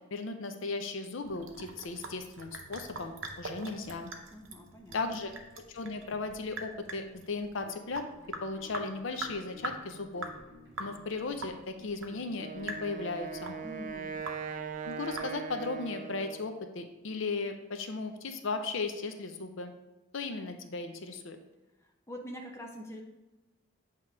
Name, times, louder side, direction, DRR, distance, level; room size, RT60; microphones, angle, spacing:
voice 1, 0.1-4.1 4.9-5.3 5.7-8.0 8.4-10.3 10.8-13.6 14.8-19.7 20.1-21.4, left 3 dB, 60° left, 7 dB, 0.5 m, -36 dB
Sink (filling or washing) / Drip, 1.2-15.7, right 3 dB, 65° right, 0.8 m, -44 dB
voice 2, 4.3-5.0 13.6-14.1 21.8-23.0, equal, 10° left, 1 dB, 0.6 m, -44 dB
sound 1, 7.6-14.8, left 2 dB, 15° right, 1.7 m, -55 dB
Wind instrument woodwind instrument, 12.4-16.6, right 6 dB, 35° right, 0.3 m, -40 dB
7.9 x 2.9 x 4.7 m, 1.1 s
head